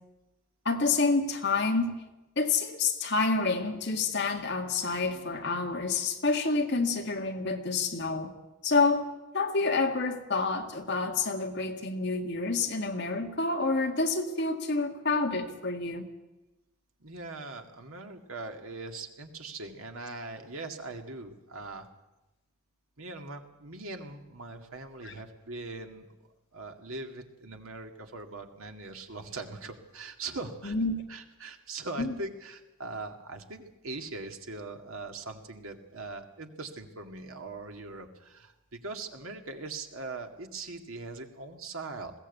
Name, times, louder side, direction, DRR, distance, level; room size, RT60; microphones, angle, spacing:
voice 1, 0.7-1.9 2.4-8.3 8.6-9.0 9.3-16.0 25.0-25.2 30.6-30.9 32.0-32.2, left 3 dB, 55° left, 3 dB, 2.0 m, -28 dB
voice 2, 17.0-21.9 23.0-26.1 26.5-30.7 31.1-42.1, right 3 dB, 75° right, 4 dB, 2.1 m, -41 dB
21.0 x 16.5 x 8.3 m, 1.0 s
head